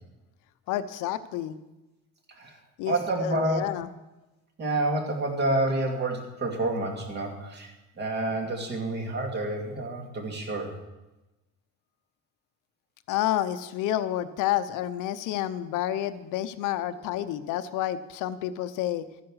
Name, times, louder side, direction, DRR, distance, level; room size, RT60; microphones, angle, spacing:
voice 1, 0.7-1.5 2.8-3.9 13.1-19.0, left 12 dB, 70° left, 12 dB, 0.8 m, -29 dB
voice 2, 2.9-3.7 4.6-10.8, right 2 dB, 30° right, 3 dB, 2.3 m, -29 dB
13.5 x 9.6 x 6.3 m, 1.0 s
cardioid pair, 170°, 33 cm